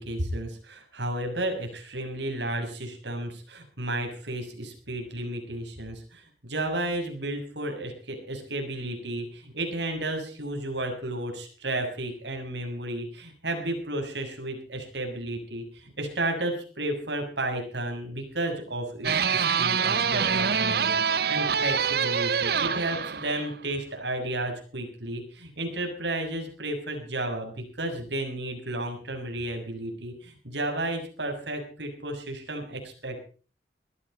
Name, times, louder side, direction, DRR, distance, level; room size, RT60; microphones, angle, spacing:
voice 1, 0.0-33.2, right 1 dB, 70° right, 3 dB, 6.6 m, -33 dB
sound 1, 19.0-23.5, right 6 dB, 55° right, 0.9 m, -25 dB
20.5 x 14.5 x 4.3 m, 0.40 s
head